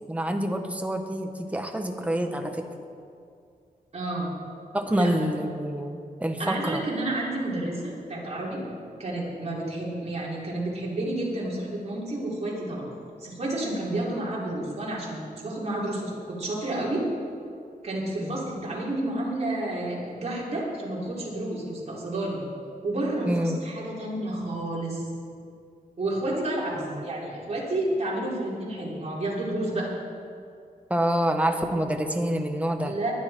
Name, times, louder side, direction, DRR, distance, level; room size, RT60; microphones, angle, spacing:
voice 1, 0.1-2.6 4.7-6.8 18.2-18.3 23.2-23.6 26.9-27.0 30.9-32.9, right 1 dB, 10° right, 4 dB, 1.2 m, -27 dB
voice 2, 3.9-4.3 4.9-5.2 6.4-8.6 9.0-12.9 13.2-17.0 17.8-22.4 22.8-25.1 26.0-29.9 32.8-33.1, right 1 dB, 45° right, -5 dB, 4.1 m, -30 dB
20.0 x 11.5 x 4.5 m, 2.4 s
wide cardioid pair, 140°, 16 cm